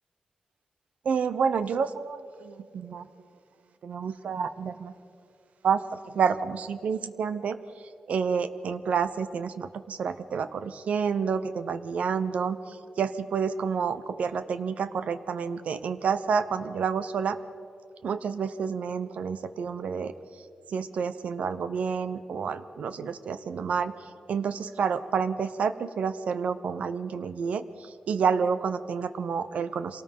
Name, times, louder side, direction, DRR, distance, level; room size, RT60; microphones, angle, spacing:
voice 1, 1.0-3.1 3.8-4.9 5.6-7.6 8.1-17.4 18.0-20.1 20.7-30.0, right 6 dB, 80° right, 12 dB, 0.9 m, -29 dB
25.5 x 18.5 x 5.6 m, 2.5 s
wide cardioid pair, 125°, 2 cm